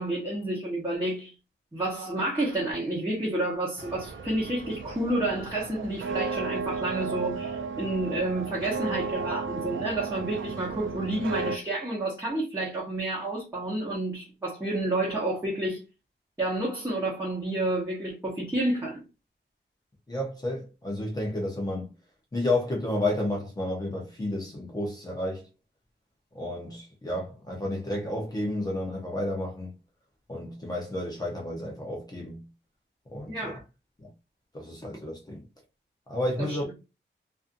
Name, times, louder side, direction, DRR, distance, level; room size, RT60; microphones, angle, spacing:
voice 1, 0.0-1.3 1.7-15.8 16.4-19.0 33.3-33.6 36.4-36.6, right 1 dB, 15° right, 0.9 m, -30 dB
sound 1, 3.8-11.6, right 4 dB, 85° right, 0.4 m, -34 dB
voice 2, 20.1-21.9 22.3-25.5 26.3-29.7 30.3-32.4 33.1-33.5 34.0-34.1 34.5-35.4 36.1-36.7, left 1 dB, 20° left, 0.6 m, -31 dB
2.5 x 2.5 x 2.5 m
wide cardioid pair, 170°, 20 cm